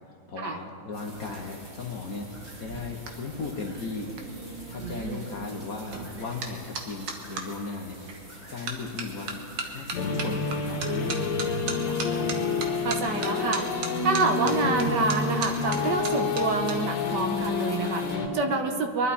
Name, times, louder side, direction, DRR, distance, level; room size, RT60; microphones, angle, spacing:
voice 1, 0.3-2.3 2.6-4.1 4.7-8.0 8.5-9.4 9.7-12.2, left 4 dB, 50° left, 0 dB, 1.3 m, -36 dB
sound 1, 0.9-18.1, right 1 dB, 40° right, 4.2 m, -47 dB
sound 2, 2.5-7.5 8.1-8.4 8.7-16.7 17.0-17.4, right 4 dB, 75° right, 2.2 m, -37 dB
voice 2, 4.8-5.2 12.8-13.7 14.0-19.1, right 3 dB, 60° right, 5 dB, 1.5 m, -27 dB
sound 3, 10.0-18.3, left 4 dB, 70° left, 2.0 m, -28 dB
23.0 x 12.0 x 4.3 m, 2.5 s
omnidirectional pair, 2.3 m